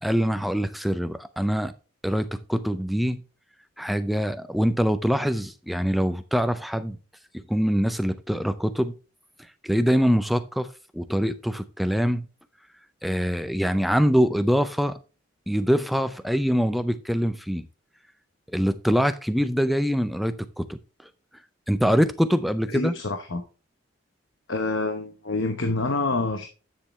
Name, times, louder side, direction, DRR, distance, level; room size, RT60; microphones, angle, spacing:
voice 1, 0.0-1.7 2.0-3.2 3.8-7.0 7.3-8.9 9.6-10.7 10.9-12.2 13.0-15.0 15.5-17.7 18.5-20.8 21.7-22.9, equal, ahead, 0.4 m, -24 dB
voice 2, 22.7-23.4 24.5-26.5, left 3 dB, 65° left, 1.0 m, -27 dB
10.5 x 6.7 x 3.2 m
head